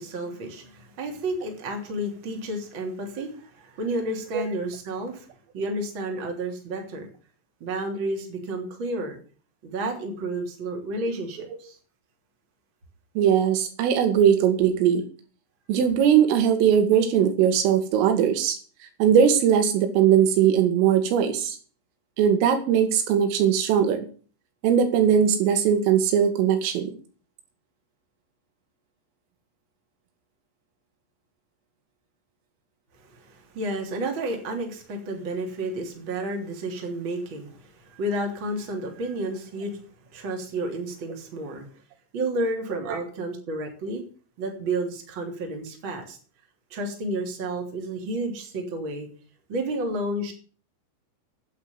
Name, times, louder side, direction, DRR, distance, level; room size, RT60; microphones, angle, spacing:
voice 1, 0.0-5.3 5.5-7.1 7.6-9.2 9.6-11.8 33.1-39.8 40.1-41.7 42.1-44.0 44.4-46.2 46.7-49.1 49.5-50.3, right 1 dB, 30° right, 2 dB, 3.2 m, -31 dB
voice 2, 13.2-15.1 15.7-18.6 19.0-21.6 22.2-24.1 24.6-26.9, right 8 dB, 80° right, 8 dB, 4.4 m, -20 dB
10.0 x 8.6 x 9.5 m, 0.41 s
omnidirectional pair, 5.8 m